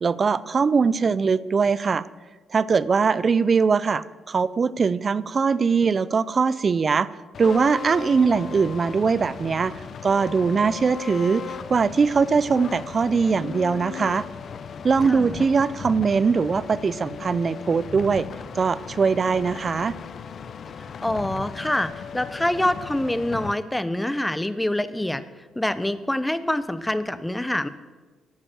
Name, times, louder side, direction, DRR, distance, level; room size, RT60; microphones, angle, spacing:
voice 1, 0.0-2.1 2.5-7.1 7.4-14.3 14.8-18.3 18.5-19.9, right 5 dB, 40° right, 19 dB, 0.5 m, -21 dB
sound 1, 7.3-23.5, left 6 dB, 55° left, 0.7 m, -37 dB
voice 2, 21.0-25.2 25.6-27.7, left 1 dB, 10° left, 14 dB, 0.8 m, -25 dB
12.0 x 8.5 x 7.6 m, 1.3 s
cardioid pair, 90°, 0 cm